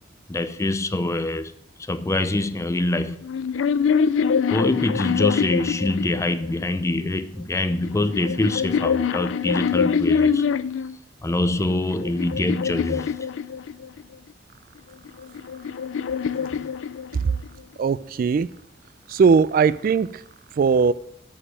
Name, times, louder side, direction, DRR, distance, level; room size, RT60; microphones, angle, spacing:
voice 1, 0.3-1.5 1.9-3.2 4.5-10.4 11.2-13.1, left 2 dB, 15° left, 0.4 m, -24 dB
sound 1, 3.2-6.6 7.5-10.9 11.6-14.0 15.1-17.5, left 6 dB, 90° left, 0.4 m, -24 dB
voice 2, 17.8-18.5 19.1-20.2 20.6-20.9, right 5 dB, 50° right, 0.3 m, -19 dB
8.6 x 5.1 x 7.2 m
head